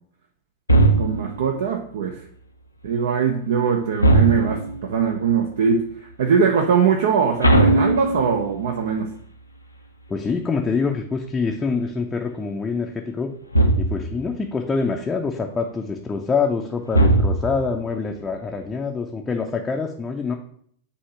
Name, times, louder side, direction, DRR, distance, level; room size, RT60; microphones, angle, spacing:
sound 1, 0.7-1.4 4.0-4.8 7.4-8.6 13.5-14.2 16.9-17.7, right 2 dB, 85° left, 0.5 m, -18 dB
voice 1, 1.0-2.2 2.8-9.1, right 6 dB, 60° right, 3 dB, 0.6 m, -21 dB
voice 2, 10.1-13.3 13.8-20.4, left 4 dB, 15° left, 1 dB, 0.5 m, -25 dB
8.3 x 2.8 x 4.6 m, 0.64 s
figure-of-eight pair, 90°, 0 cm